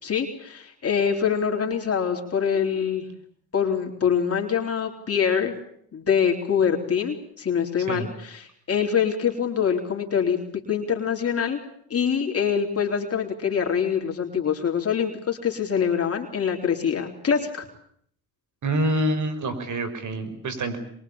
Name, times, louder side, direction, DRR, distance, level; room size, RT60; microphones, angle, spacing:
voice 1, 0.0-3.1 3.5-5.5 5.9-10.4 10.7-11.6 11.9-17.7, left 7 dB, 35° left, 1 dB, 3.9 m, -24 dB
voice 2, 18.6-20.8, right 1 dB, 50° right, 10 dB, 5.8 m, -26 dB
24.0 x 22.5 x 8.8 m, 0.66 s
supercardioid pair, 80°, 39 cm